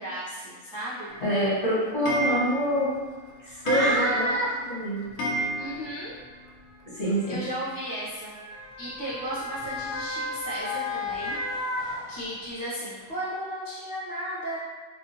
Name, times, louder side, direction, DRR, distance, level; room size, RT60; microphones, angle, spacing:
voice 1, 0.0-1.1 3.4-4.5 5.6-6.2 7.0-8.3 8.8-11.4 11.8-14.6, right 1 dB, 15° left, -12 dB, 0.9 m, -33 dB
Clock, 1.1-6.2 6.5-6.6 6.8-6.9 7.1-7.2 8.4-8.5 9.0-9.1 9.7-9.8 10.3-10.4 11.0-11.1 11.6-11.7, right 1 dB, 65° left, 0.7 m, -32 dB
voice 2, 1.2-2.9 3.6-4.2 4.7-5.1 7.0-7.4, equal, 40° left, -12 dB, 1.3 m, -25 dB
Motor vehicle (road) / Siren, 2.7-2.8 3.8-4.0 5.0-12.6 13.1-13.2, left 2 dB, 40° right, 0.3 m, -35 dB
3.1 x 2.6 x 2.8 m, 1.4 s
omnidirectional pair, 1.5 m